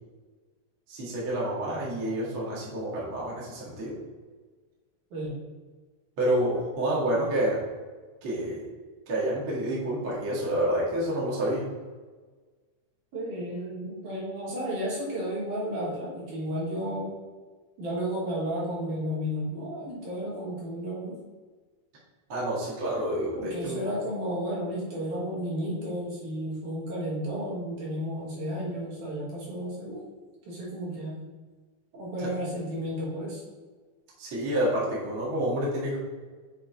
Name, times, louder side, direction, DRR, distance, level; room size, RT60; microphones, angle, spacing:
voice 1, 0.9-3.9 6.2-7.6 8.2-8.6 9.1-11.7 22.3-23.9 32.2-32.3 34.2-36.0, right 1 dB, 45° right, -6 dB, 2.0 m, -28 dB
voice 2, 13.1-17.2 17.8-21.2 23.3-30.0 30.5-31.2 31.9-33.4, equal, 60° right, -6 dB, 3.4 m, -33 dB
7.3 x 3.8 x 4.5 m, 1.4 s
omnidirectional pair, 4.1 m